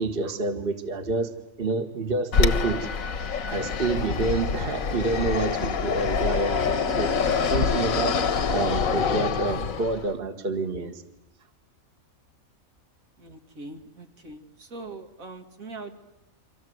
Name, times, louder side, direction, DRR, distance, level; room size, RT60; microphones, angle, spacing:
voice 1, 0.0-2.9 3.5-7.1 7.4-11.0, right 3 dB, 40° right, 8 dB, 1.7 m, -28 dB
Fixed-wing aircraft airplane, 2.3-10.1, left 5 dB, 80° left, 1.6 m, -26 dB
voice 2, 13.2-15.9, right 3 dB, 80° right, 5 dB, 2.8 m, -42 dB
28.5 x 25.0 x 7.9 m, 0.85 s
omnidirectional pair, 1.4 m